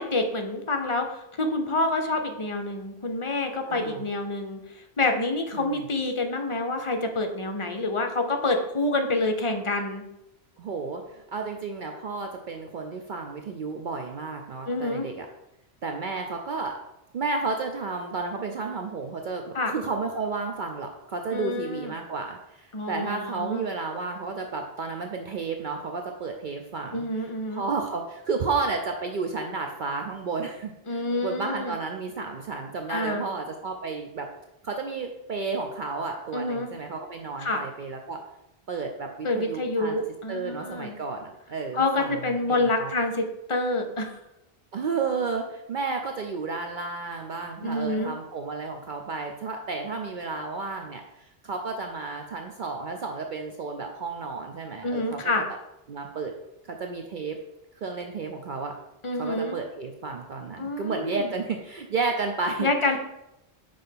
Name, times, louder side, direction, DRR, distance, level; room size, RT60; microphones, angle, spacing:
voice 1, 0.0-4.6 5.0-10.0 14.7-15.1 19.5-19.7 21.3-21.9 22.7-23.6 26.9-27.6 30.9-31.7 32.9-33.3 36.3-36.7 37.4-37.6 39.2-40.9 41.7-44.2 47.6-48.1 54.8-55.5 59.0-59.6 60.6-61.3 62.6-63.0, left 2 dB, 35° left, 5 dB, 0.6 m, -27 dB
voice 2, 3.7-4.1 5.5-5.8 10.6-15.3 15.8-16.8 17.1-27.1 27.5-34.3 34.6-38.2 38.7-40.0 40.3-42.9 44.7-51.0 51.4-55.6 55.9-56.3 56.7-57.4 57.8-58.7 59.2-62.7, right 4 dB, 55° right, 3 dB, 0.7 m, -32 dB
5.4 x 3.4 x 5.7 m, 0.90 s
omnidirectional pair, 1.1 m